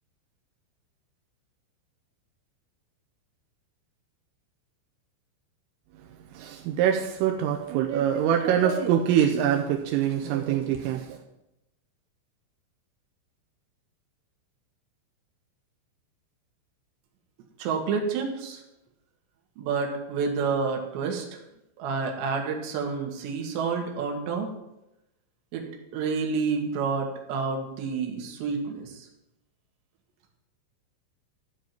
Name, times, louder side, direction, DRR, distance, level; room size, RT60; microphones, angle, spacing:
voice 1, 5.9-11.2, right 9 dB, 85° right, 2 dB, 3.4 m, -24 dB
voice 2, 17.6-18.6 19.6-21.4 21.8-24.5 25.5-25.7 25.9-29.1, right 5 dB, 65° right, 1 dB, 3.9 m, -29 dB
14.0 x 5.1 x 9.3 m, 0.89 s
omnidirectional pair, 5.8 m